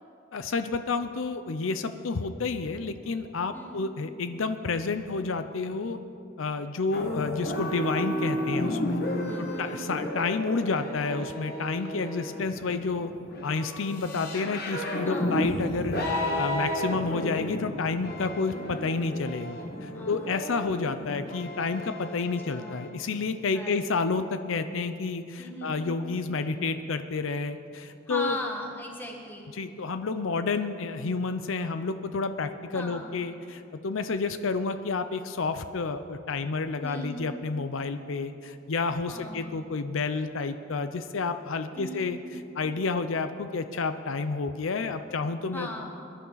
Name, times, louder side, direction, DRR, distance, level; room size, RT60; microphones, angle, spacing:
voice 1, 0.3-6.0 6.4-9.0 9.6-13.1 13.4-16.0 16.4-28.4 29.5-42.2 42.6-45.8, left 4 dB, 75° left, 10 dB, 0.6 m, -30 dB
voice 2, 3.5-3.9 9.2-9.9 15.1-15.5 18.4-18.7 19.9-20.4 22.2-22.8 23.5-23.8 25.4-25.9 28.1-29.5 32.7-33.1 36.8-37.3 39.1-39.5 41.7-42.2 45.5-45.9, left 1 dB, 10° left, 0 dB, 1.6 m, -39 dB
sound 1, 6.9-22.9, left 1 dB, 50° left, 1.6 m, -33 dB
22.0 x 11.0 x 4.0 m, 2.6 s
head